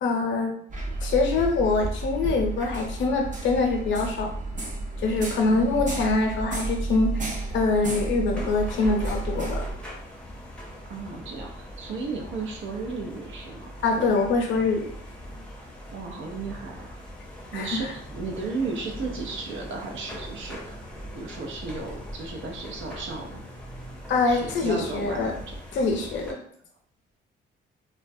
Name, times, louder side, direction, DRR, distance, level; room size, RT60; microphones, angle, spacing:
voice 1, 0.0-0.6 1.0-4.3 5.0-7.3 7.5-9.6 13.8-14.9 17.5-17.9 24.1-25.3 25.7-26.4, left 3 dB, 70° left, 2 dB, 0.6 m, -24 dB
sound 1, 0.7-9.7, right 2 dB, 40° right, 0.6 m, -32 dB
voice 2, 5.5-5.8 10.9-13.7 14.0-14.1 15.9-17.0 17.5-20.8 21.1-23.4 24.2-25.6, right 4 dB, 80° right, 2 dB, 0.6 m, -34 dB
sound 2, 8.3-26.3, equal, 5° left, 0.6 m, -41 dB
2.2 x 2.1 x 2.6 m, 0.63 s
cardioid pair, 90°, 20 cm